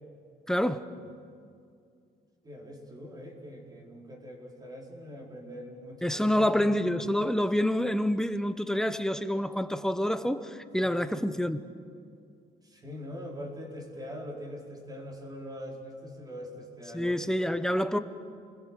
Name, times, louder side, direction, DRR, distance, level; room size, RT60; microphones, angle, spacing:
voice 1, 0.5-0.8 6.0-11.6 16.9-18.0, equal, 5° left, 10 dB, 0.9 m, -27 dB
voice 2, 2.4-6.7 10.8-11.1 12.6-17.2, equal, 20° right, 0 dB, 4.6 m, -42 dB
29.5 x 21.0 x 7.5 m, 2.4 s
cardioid pair, 135°, 17 cm